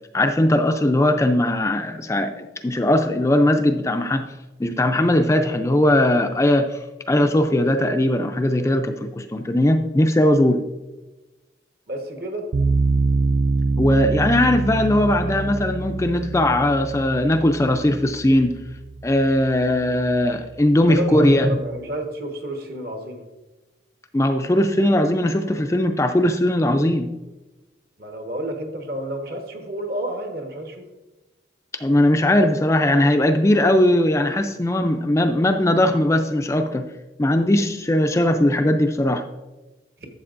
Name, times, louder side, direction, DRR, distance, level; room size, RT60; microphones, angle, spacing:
voice 1, 0.1-4.3 4.6-6.8 7.1-10.6 13.8-18.5 19.0-21.6 24.1-27.1 31.8-36.9 37.2-39.3, left 1 dB, 15° left, 6 dB, 0.4 m, -19 dB
voice 2, 11.9-12.5 20.9-23.2 28.0-30.8, right 1 dB, 55° right, 3 dB, 1.2 m, -30 dB
sound 1, 12.5-19.6, right 3 dB, 90° right, 0.4 m, -24 dB
12.0 x 7.4 x 2.5 m, 1.1 s
head